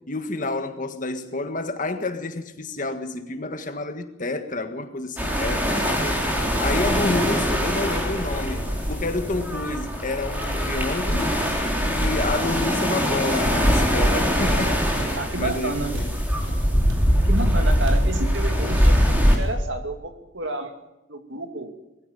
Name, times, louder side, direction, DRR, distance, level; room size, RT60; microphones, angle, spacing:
voice 1, 0.0-6.3 6.6-11.4 11.8-14.9 15.4-16.1, left 2 dB, 40° left, 1.7 m, -29 dB
sound 1, 5.2-19.4, equal, 10° right, 4.0 m, -22 dB
Walk footsteps, 13.5-13.7 14.0-18.1 18.3-18.6 18.8-19.6, right 1 dB, 85° right, 4.1 m, -36 dB
voice 2, 15.2-15.9 17.2-20.8 21.1-21.7, right 2 dB, 60° right, 2.6 m, -30 dB
21.0 x 15.5 x 9.3 m
head